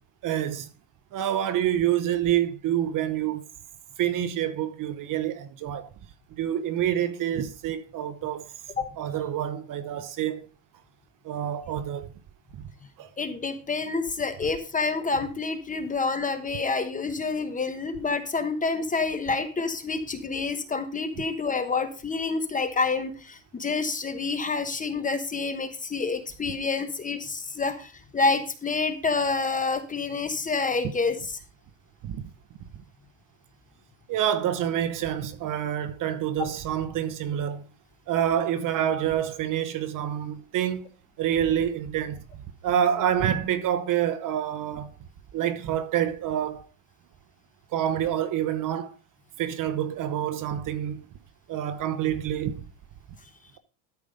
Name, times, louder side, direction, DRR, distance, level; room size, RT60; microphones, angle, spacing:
voice 1, 0.2-0.7 1.1-3.4 4.0-5.9 6.4-8.5 9.0-10.5 11.2-12.1 12.5-12.6 13.0-13.1 32.0-32.2 34.1-37.6 38.1-40.8 41.2-42.2 42.6-44.9 45.3-46.7 47.7-49.0 49.4-51.1 51.5-52.6, right 10 dB, 40° right, 1.0 m, -27 dB
voice 2, 13.2-31.4 36.4-36.5, left 4 dB, 15° left, 1.0 m, -28 dB
13.0 x 5.1 x 5.1 m
cardioid pair, 140°, 48 cm